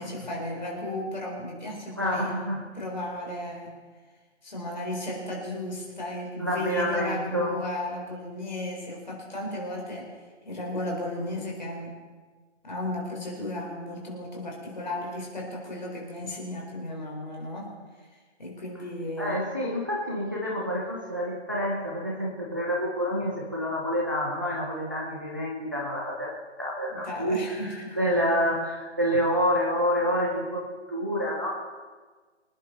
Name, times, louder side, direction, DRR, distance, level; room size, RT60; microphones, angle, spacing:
voice 1, 0.0-2.3 2.7-3.8 4.4-10.1 10.4-12.0 12.6-17.7 18.4-19.4 26.9-28.0, left 1 dB, 40° left, -1 dB, 4.4 m, -34 dB
voice 2, 2.0-2.7 6.4-7.6 19.2-26.3 26.6-30.6 30.9-31.5, equal, 15° right, -4 dB, 1.0 m, -28 dB
25.5 x 10.5 x 4.1 m, 1.4 s
hypercardioid pair, 180°, 36 cm